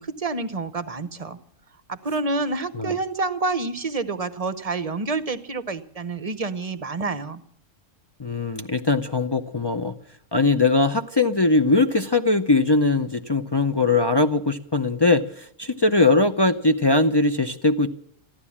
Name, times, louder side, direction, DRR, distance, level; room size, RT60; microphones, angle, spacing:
voice 1, 0.0-1.4 1.9-7.4, right 3 dB, 35° right, 13 dB, 0.7 m, -28 dB
voice 2, 8.2-9.9 10.3-17.9, left 3 dB, 40° left, 6 dB, 0.3 m, -20 dB
14.0 x 12.0 x 8.5 m, 0.68 s
omnidirectional pair, 1.3 m